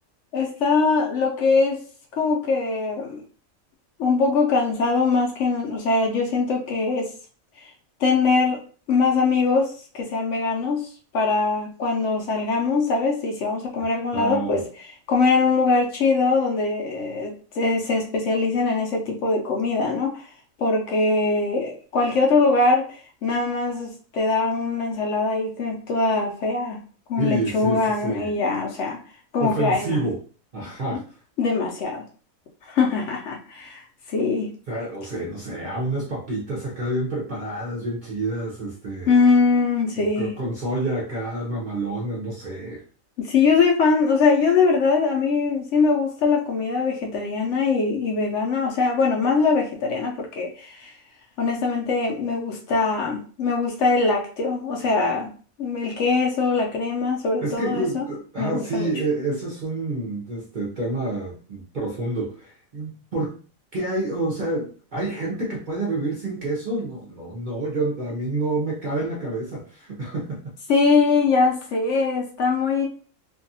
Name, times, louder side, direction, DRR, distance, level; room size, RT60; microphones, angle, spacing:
voice 1, 0.3-1.8 2.2-3.2 4.0-7.1 8.0-8.6 8.9-10.9 11.1-14.6 15.1-20.1 20.6-26.8 27.1-29.0 29.3-30.0 30.9-31.0 31.4-32.0 32.7-33.8 34.1-34.5 39.1-40.3 43.2-50.9 51.4-55.3 55.6-58.1 58.4-58.9 70.7-72.9, left 4 dB, 65° left, 0 dB, 0.9 m, -22 dB
voice 2, 13.9-14.6 27.2-28.4 29.4-30.2 30.5-31.0 34.7-39.1 40.0-42.8 57.4-63.4 63.7-70.4, right 2 dB, 50° right, -4 dB, 0.6 m, -28 dB
2.6 x 2.4 x 2.6 m, 0.40 s
omnidirectional pair, 1.5 m